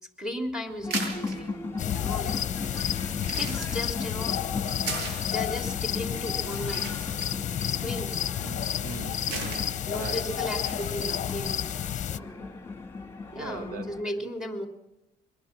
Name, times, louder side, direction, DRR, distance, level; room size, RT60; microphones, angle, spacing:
voice 1, 0.2-2.4 2.7-3.0 3.3-4.3 5.2-6.9 7.7-8.2 9.9-12.6 13.3-14.7, left 1 dB, 5° right, 4 dB, 3.3 m, -36 dB
sound 1, 0.7-11.4, right 3 dB, 90° right, 7.4 m, -41 dB
sound 2, 0.8-14.0, left 3 dB, 15° left, 3.3 m, -38 dB
sound 3, 1.8-12.2, left 10 dB, 45° left, 0.8 m, -31 dB
voice 2, 8.4-10.2 13.4-13.9, right 3 dB, 60° right, 9 dB, 1.8 m, -40 dB
23.0 x 20.0 x 6.1 m, 0.97 s
cardioid pair, 110°, 17 cm